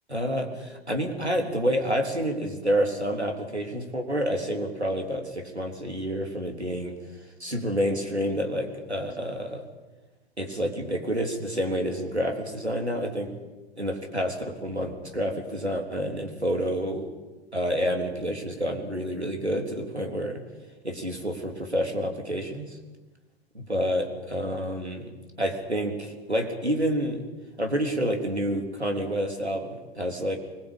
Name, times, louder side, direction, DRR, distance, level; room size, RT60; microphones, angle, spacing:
voice 1, 0.1-6.9 7.4-9.6 10.4-13.3 13.8-17.1 17.5-20.4 20.8-22.8 23.5-25.1 25.4-27.2 27.6-30.4, equal, 90° right, 3 dB, 3.7 m, -28 dB
25.0 x 21.0 x 8.7 m, 1.2 s
figure-of-eight pair, 100°, 32 cm